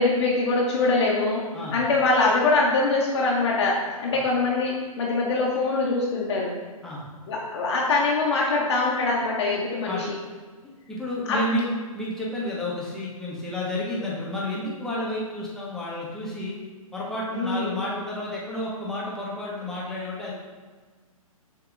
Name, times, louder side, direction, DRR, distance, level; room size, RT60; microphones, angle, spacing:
voice 1, 0.0-6.5 7.3-10.2 11.3-11.4 17.3-17.8, left 3 dB, 50° left, -3 dB, 0.8 m, -23 dB
voice 2, 10.9-11.7 11.9-16.5 16.9-20.3, left 1 dB, 5° left, -7 dB, 0.8 m, -31 dB
6.6 x 2.8 x 2.4 m, 1.4 s
figure-of-eight pair, 130°, 19 cm